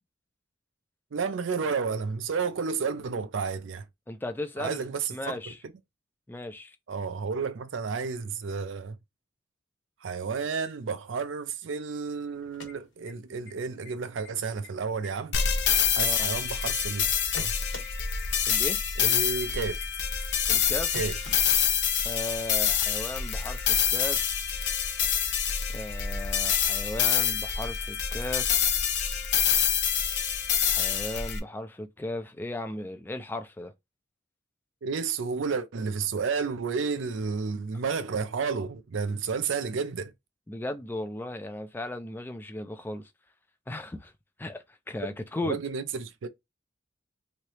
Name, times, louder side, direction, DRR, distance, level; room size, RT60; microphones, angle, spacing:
voice 1, 1.1-3.8 4.6-5.4 6.9-9.0 10.0-15.4 15.9-17.1 17.4-17.5 19.0-19.8 20.9-21.2 34.8-40.1 45.4-46.3, right 5 dB, 75° right, 0.5 m, -31 dB
voice 2, 4.1-4.8 5.1-5.6 6.3-6.8 16.0-16.3 18.5-18.8 20.5-21.0 22.0-24.4 25.7-28.6 30.6-33.7 40.5-43.1 43.7-44.1 44.4-45.6, left 1 dB, 10° left, 0.4 m, -36 dB
sound 1, 12.4-13.5 13.8-13.9 14.2-14.7 15.0-16.6 17.0-17.9 18.2-18.3 18.6-18.7 19.0-19.1 19.4-19.5 19.8-19.9 20.2-20.3 20.6-20.7 20.9-22.0, left 3 dB, 80° left, 1.2 m, -44 dB
sound 2, 15.3-31.4, left 8 dB, 65° left, 0.6 m, -26 dB
3.2 x 2.7 x 2.9 m
head